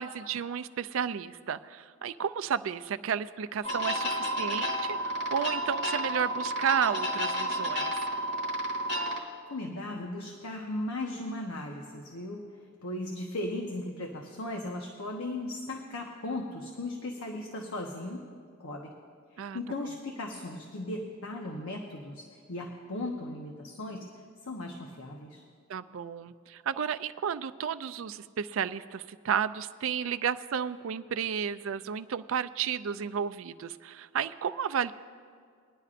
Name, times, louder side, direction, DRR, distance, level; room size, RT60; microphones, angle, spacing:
voice 1, 0.0-8.1 19.4-19.6 25.7-34.9, right 7 dB, 70° right, 12 dB, 0.4 m, -32 dB
sound 1, 3.6-9.2, equal, 50° left, 1.9 m, -31 dB
voice 2, 9.5-12.5 12.8-18.2 18.6-18.9 19.3-24.1 24.4-25.4, left 1 dB, 85° left, 1 dB, 1.0 m, -37 dB
21.0 x 11.0 x 2.5 m, 2.2 s
head